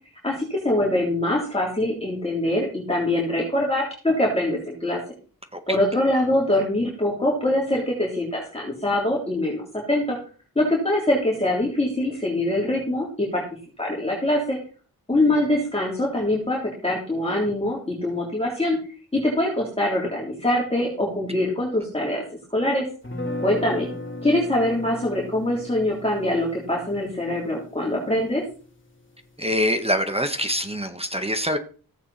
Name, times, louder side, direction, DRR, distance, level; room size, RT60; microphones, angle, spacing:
voice 1, 0.2-5.0 5.7-10.2 10.6-13.4 13.8-14.6 15.1-18.8 19.1-22.2 22.5-22.8 23.4-23.9 24.2-28.4, left 1 dB, 15° left, 3.5 m, -23 dB
sound 1, 23.0-29.0, left 1 dB, 30° left, 3.3 m, -36 dB
voice 2, 29.4-31.6, equal, 15° right, 1.4 m, -24 dB
15.0 x 8.7 x 4.3 m
wide cardioid pair, 95°, 37 cm